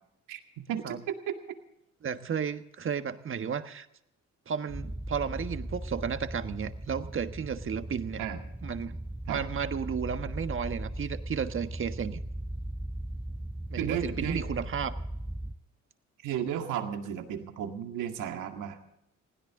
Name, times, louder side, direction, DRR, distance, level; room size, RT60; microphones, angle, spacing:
voice 1, 0.3-1.4 8.2-8.4 9.3-9.4 13.8-14.4 16.2-18.8, right 9 dB, 90° right, 5 dB, 2.1 m, -34 dB
voice 2, 2.0-3.9 4.5-8.2 8.6-8.9 9.3-12.2 13.7-14.9, right 7 dB, 45° right, 9 dB, 1.4 m, -33 dB
sound 1, 4.7-15.5, right 1 dB, 5° right, 1.0 m, -38 dB
21.0 x 16.5 x 3.7 m, 0.81 s
cardioid pair, 90°, 30 cm